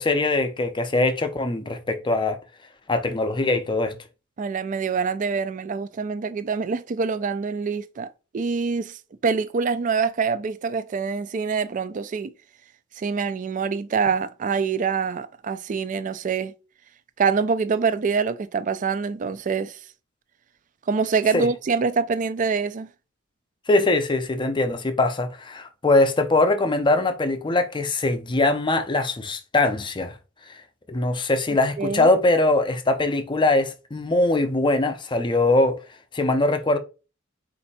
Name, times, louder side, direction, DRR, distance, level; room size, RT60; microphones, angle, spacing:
voice 1, 0.0-2.4 2.9-3.9 21.3-21.5 23.7-30.1 30.5-30.6 30.9-35.8 36.1-36.8, left 2 dB, 25° left, 0.5 m, -22 dB
voice 2, 4.4-8.1 8.3-12.3 13.0-16.5 17.2-19.8 20.9-22.9 31.8-32.1, right 5 dB, 40° right, 0.3 m, -25 dB
4.3 x 2.6 x 4.1 m
head